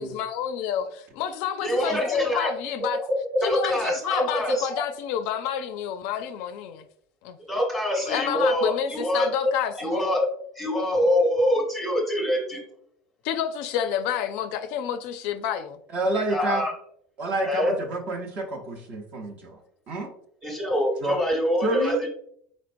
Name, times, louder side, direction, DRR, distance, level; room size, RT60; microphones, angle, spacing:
voice 1, 0.0-3.0 3.4-6.9 7.2-7.4 8.1-10.1 13.2-15.8, left 9 dB, 55° left, 9 dB, 0.4 m, -29 dB
voice 2, 1.6-2.5 3.3-4.7 7.5-9.5 9.8-10.3 10.5-12.6 16.3-16.7 17.4-17.7 20.4-22.1, equal, ahead, -1 dB, 1.2 m, -24 dB
voice 3, 15.9-16.6 17.2-19.6 19.9-20.1 21.0-21.2 21.6-22.0, right 2 dB, 35° right, 2 dB, 0.8 m, -28 dB
4.4 x 4.3 x 2.5 m, 0.66 s
cardioid pair, 160°, 4 cm